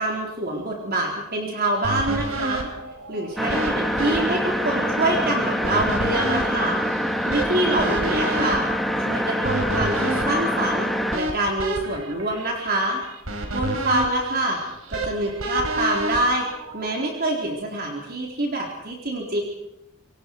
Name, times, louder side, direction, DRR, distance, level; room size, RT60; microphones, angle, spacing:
voice 1, 0.0-2.7 3.1-6.8 7.3-8.7 9.0-13.0 13.5-14.6 14.9-16.5 16.7-19.4, right 1 dB, 50° right, -1 dB, 4.2 m, -25 dB
sound 1, 1.8-17.1, right 1 dB, 90° right, 4.1 m, -31 dB
sound 2, 3.4-11.2, equal, ahead, 1.8 m, -25 dB
28.0 x 24.0 x 4.8 m, 0.88 s
head